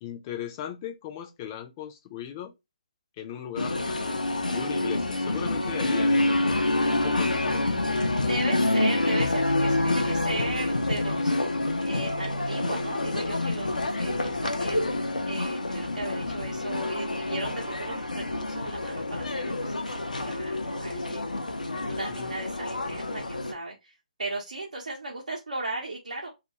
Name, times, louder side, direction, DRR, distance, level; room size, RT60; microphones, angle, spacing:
voice 1, 0.0-2.5 3.2-4.2 4.5-7.9 22.2-22.3, left 9 dB, 25° left, 0.4 m, -38 dB
sound 1, 3.6-23.5, left 2 dB, 80° left, 0.5 m, -27 dB
voice 2, 5.4-5.8 8.2-11.3 11.9-14.8 15.3-21.3 21.7-26.3, right 2 dB, 70° right, 0.7 m, -36 dB
2.4 x 2.2 x 2.9 m
figure-of-eight pair, 140°, 4 cm